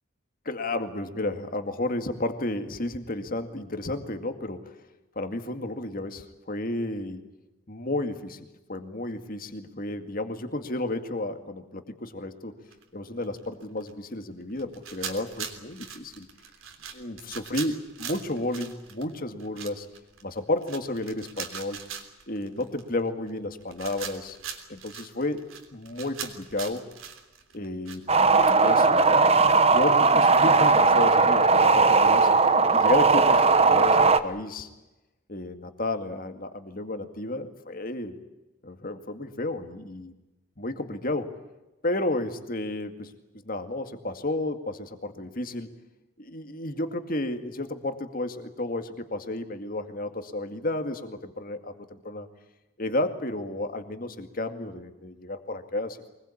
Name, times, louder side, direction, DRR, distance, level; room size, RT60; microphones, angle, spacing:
voice 1, 0.5-4.8 5.2-7.3 7.7-12.5 12.9-16.3 16.9-19.9 20.2-21.8 22.3-24.4 24.7-25.4 25.7-26.9 27.5-28.1 28.6-32.3 32.7-34.7 35.3-38.2 38.6-40.1 40.6-41.4 41.8-43.1 43.5-45.7 46.2-52.3 52.8-56.1, left 2 dB, 40° left, 8 dB, 2.2 m, -32 dB
sound 1, 12.7-12.8 13.2-13.9 14.6-28.5 28.8-31.3, right 7 dB, 75° right, 3.3 m, -41 dB
sound 2, 28.1-34.2, right 4 dB, 30° right, 1.1 m, -18 dB
24.0 x 20.5 x 8.7 m, 1.0 s
head